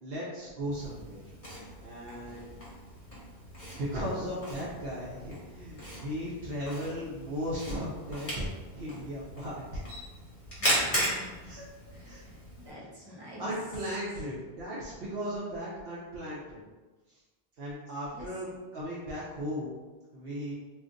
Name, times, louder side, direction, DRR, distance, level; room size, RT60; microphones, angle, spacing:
voice 1, 0.0-1.2 1.8-2.5 3.7-9.8 11.4-11.7 12.0-12.2 13.1-16.6 17.6-19.7 20.1-20.5, equal, 65° right, -7 dB, 0.9 m, -36 dB
Camera, 0.7-12.7, equal, 30° left, 1.3 m, -37 dB
voice 2, 2.2-2.5 10.6-11.5 11.9-13.5 18.1-18.3, equal, 25° right, -7 dB, 0.8 m, -48 dB
2.5 x 2.4 x 3.7 m, 1.2 s
omnidirectional pair, 1.1 m